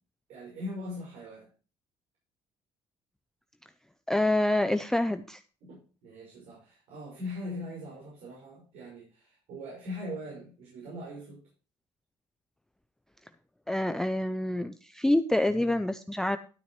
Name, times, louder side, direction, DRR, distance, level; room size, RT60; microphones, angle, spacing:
voice 1, 0.3-1.5 5.6-11.4, left 1 dB, 75° right, -4 dB, 5.6 m, -41 dB
voice 2, 4.1-5.4 13.7-16.4, left 1 dB, 5° left, 9 dB, 0.5 m, -27 dB
12.5 x 9.2 x 3.1 m, 0.36 s
cardioid pair, 105°, 11 cm